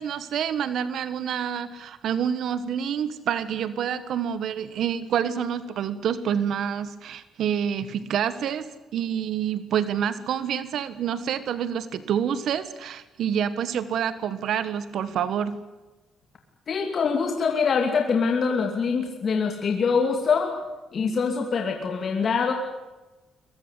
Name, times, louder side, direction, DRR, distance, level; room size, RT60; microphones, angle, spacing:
voice 1, 0.0-15.6, right 8 dB, 70° right, 13 dB, 1.3 m, -27 dB
voice 2, 16.7-20.6 20.9-22.5, left 5 dB, 50° left, 3 dB, 2.6 m, -24 dB
22.5 x 22.0 x 8.3 m, 1.1 s
cardioid pair, 90°, 0 cm